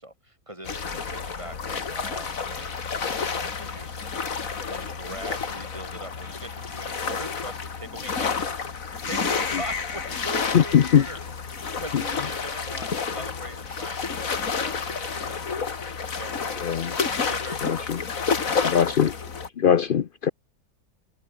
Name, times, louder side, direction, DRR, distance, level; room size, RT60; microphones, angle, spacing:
voice 1, 0.0-2.8 3.1-8.6 9.0-11.5 11.8-15.8 16.2-16.6 17.1-17.9 18.4-18.7, right 1 dB, 15° right, 5.4 m, -41 dB
sound 1, 0.6-19.5, left 5 dB, 50° left, 2.3 m, -30 dB
voice 2, 10.5-11.0 16.6-16.9 17.6-18.0 18.7-19.1 19.6-20.3, left 8 dB, 80° left, 0.4 m, -20 dB
omnidirectional pair, 1.8 m